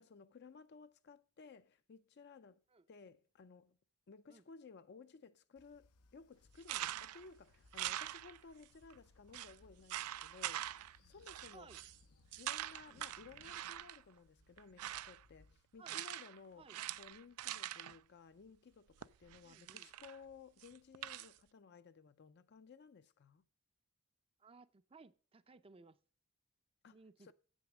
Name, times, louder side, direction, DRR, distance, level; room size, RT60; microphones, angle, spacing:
voice 1, 0.0-2.6 2.9-3.8 4.1-10.7 11.0-11.7 12.4-16.7 17.0-23.4 26.8-27.3, left 5 dB, 50° left, 0.4 m, -58 dB
Train, 5.6-15.6, left 2 dB, 90° left, 0.7 m, -68 dB
sound 1, 6.6-7.3 7.7-8.6 8.9-9.0 9.3-9.5 9.9-11.0 11.3-12.0 12.3-14.0 14.6-15.2 15.9-16.4 16.7-18.0 19.0-20.2 20.6-21.3, right 13 dB, 85° right, 0.4 m, -44 dB
voice 2, 19.4-19.9 24.4-26.0 26.9-27.3, right 4 dB, 25° right, 0.5 m, -60 dB
8.0 x 6.3 x 6.0 m
head